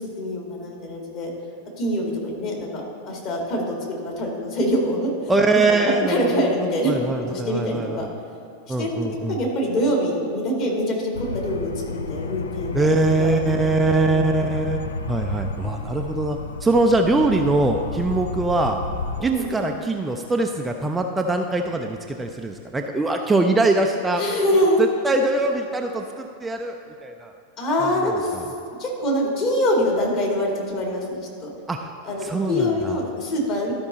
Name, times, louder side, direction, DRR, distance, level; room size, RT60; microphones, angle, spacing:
voice 1, 0.2-1.3 1.8-5.3 5.7-5.8 6.1-7.0 7.3-8.1 8.7-8.9 9.3-14.5 19.2-19.6 24.2-24.8 27.6-28.4 28.8-31.5 32.0-33.7, equal, 40° left, -2 dB, 2.1 m, -25 dB
voice 2, 5.3-6.3 6.6-8.0 8.7-9.4 12.7-18.8 19.2-24.2 24.5-24.6 25.0-27.3 28.0-28.5 31.7-31.9 32.2-33.0, right 2 dB, 10° right, 3 dB, 0.4 m, -22 dB
sound 1, 11.1-19.2, left 3 dB, 65° left, 0.4 m, -31 dB
12.5 x 5.2 x 4.0 m, 2.6 s
figure-of-eight pair, 90°, 0 cm